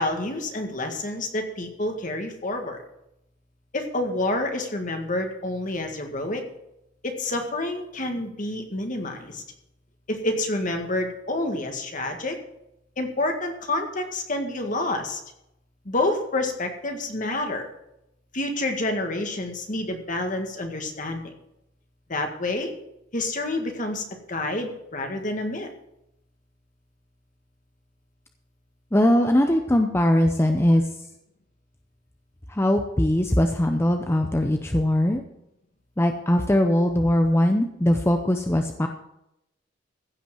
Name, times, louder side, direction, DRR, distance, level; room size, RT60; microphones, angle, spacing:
voice 1, 0.0-2.8 3.7-6.4 7.0-9.4 10.1-12.4 13.0-15.2 15.9-17.7 18.3-21.3 22.1-22.7 23.1-25.7, left 2 dB, 45° left, 4 dB, 1.9 m, -28 dB
voice 2, 28.9-30.8 32.5-35.2 36.0-38.9, left 1 dB, 15° left, 5 dB, 0.7 m, -21 dB
15.5 x 5.8 x 7.6 m, 0.83 s
head